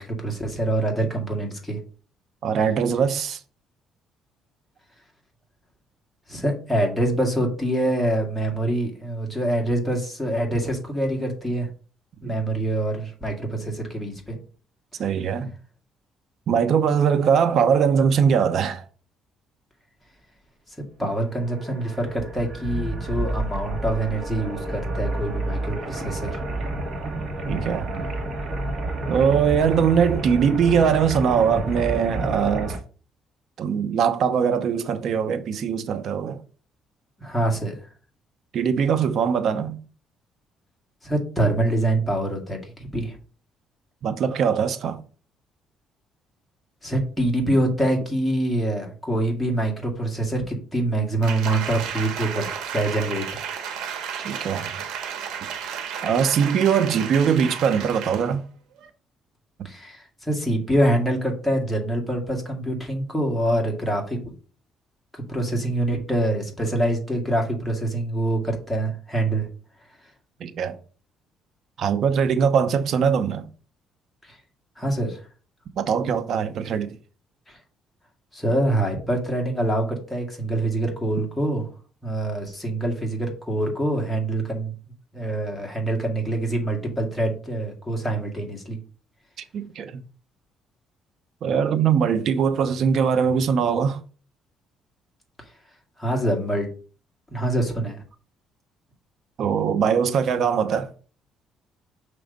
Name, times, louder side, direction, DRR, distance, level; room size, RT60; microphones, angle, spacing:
voice 1, 0.0-1.8 6.3-11.7 12.2-14.4 21.0-26.4 37.2-37.7 41.0-43.2 46.8-52.5 52.7-53.4 59.6-64.3 65.3-69.5 74.2-74.4 74.8-75.2 77.5-77.6 78.3-81.6 82.0-84.7 85.1-88.8 96.0-96.7 97.3-98.0, right 1 dB, 5° left, 2.0 m, -25 dB
voice 2, 2.4-3.4 12.2-12.3 15.0-15.5 16.5-18.8 27.4-28.1 29.1-32.8 33.6-36.4 38.5-39.8 44.0-45.0 54.2-54.7 56.0-58.4 70.4-70.8 71.8-73.5 75.8-76.9 89.5-90.0 91.4-94.0 99.4-100.9, right 7 dB, 60° right, 0.8 m, -21 dB
sound 1, 21.3-32.8, right 2 dB, 40° right, 1.7 m, -30 dB
Applause, 51.2-58.4 58.8-58.9, right 7 dB, 85° right, 1.0 m, -33 dB
6.0 x 3.2 x 5.1 m
cardioid pair, 110°, 0 cm